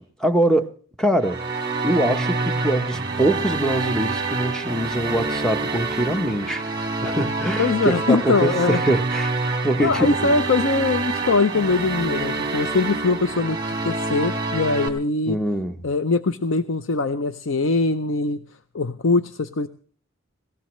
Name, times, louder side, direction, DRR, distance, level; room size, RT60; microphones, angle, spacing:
voice 1, 0.0-6.7 7.0-9.3 9.6-10.3 15.3-15.8, right 1 dB, 5° left, 0.8 m, -23 dB
sound 1, 1.2-14.9, right 3 dB, 20° right, 2.3 m, -27 dB
voice 2, 7.6-8.8 9.8-15.4 15.8-18.4 18.7-19.7, left 3 dB, 70° left, 0.6 m, -22 dB
20.5 x 17.5 x 3.1 m
head